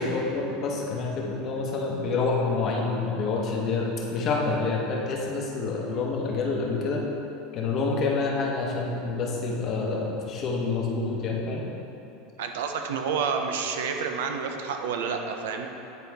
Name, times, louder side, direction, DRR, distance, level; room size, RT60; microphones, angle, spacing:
voice 1, 0.0-7.1 7.5-11.6, left 3 dB, 40° left, -1 dB, 1.0 m, -27 dB
voice 2, 12.4-15.7, right 6 dB, 85° right, 4 dB, 0.6 m, -29 dB
9.4 x 4.1 x 3.4 m, 2.9 s
supercardioid pair, 140°, 0 cm